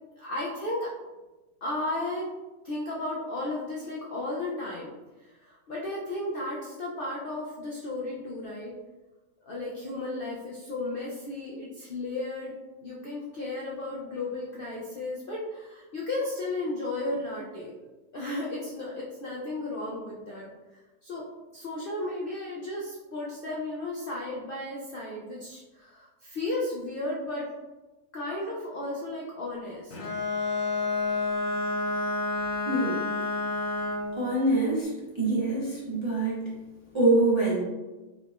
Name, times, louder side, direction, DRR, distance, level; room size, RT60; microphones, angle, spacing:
voice 1, 0.2-0.9 1.6-2.3 2.6-4.9 5.2-8.7 9.5-12.5 12.8-17.8 18.1-21.3 21.5-27.5 28.1-30.0, left 2 dB, 70° left, -5 dB, 0.5 m, -34 dB
Bowed string instrument, 29.9-34.2, left 3 dB, 85° left, 1.2 m, -29 dB
voice 2, 32.7-33.0 34.2-34.9 35.1-36.5 36.9-37.6, right 2 dB, 40° right, -7 dB, 0.4 m, -25 dB
3.4 x 3.0 x 2.4 m, 1.1 s
omnidirectional pair, 1.6 m